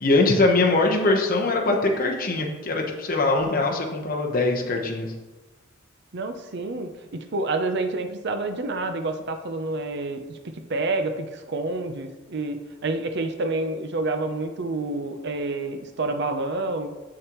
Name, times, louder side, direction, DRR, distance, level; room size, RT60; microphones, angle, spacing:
voice 1, 0.0-5.1, left 2 dB, 45° left, 1 dB, 1.0 m, -22 dB
voice 2, 6.1-16.9, right 2 dB, 60° right, 8 dB, 0.6 m, -28 dB
7.8 x 6.4 x 3.0 m, 1.2 s
head